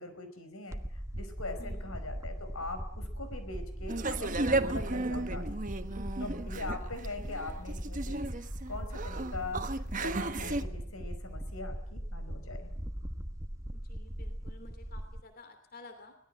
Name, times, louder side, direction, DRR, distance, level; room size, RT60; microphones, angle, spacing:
voice 1, 0.0-5.5 5.8-12.7, left 2 dB, 90° left, 9 dB, 5.3 m, -42 dB
sound 1, 0.7-15.2, equal, 15° right, 1.2 m, -39 dB
voice 2, 1.6-2.0 5.9-6.2 13.7-16.1, left 2 dB, 45° left, 8 dB, 3.0 m, -53 dB
sound 2, 3.9-10.6, right 2 dB, 40° right, 1.2 m, -34 dB
24.0 x 19.0 x 7.8 m, 0.68 s
head